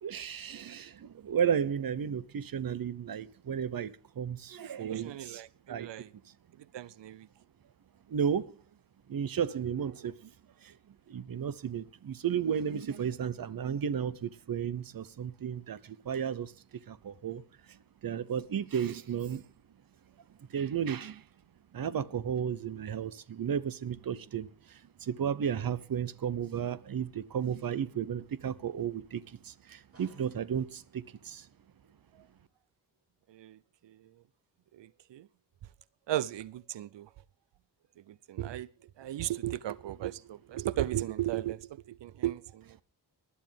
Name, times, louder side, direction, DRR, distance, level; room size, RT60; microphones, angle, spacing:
voice 1, 0.0-5.4 5.7-5.9 8.1-8.6 9.1-10.3 10.6-10.7 11.1-16.5 16.9-17.4 17.7-17.8 18.0-19.4 20.5-21.2 21.7-31.5, right 8 dB, 55° right, 0.9 m, -33 dB
voice 2, 4.9-6.1 6.7-7.3 32.1-32.3 33.3-33.6 33.8-34.0 34.7-35.3 36.1-37.1 38.1-38.7 39.0-42.8, right 13 dB, 90° right, 0.6 m, -36 dB
sound 1, 29.7-35.6 36.0-36.3, right 2 dB, 35° right, 7.6 m, -67 dB
20.0 x 11.5 x 3.5 m
wide cardioid pair, 160°, 42 cm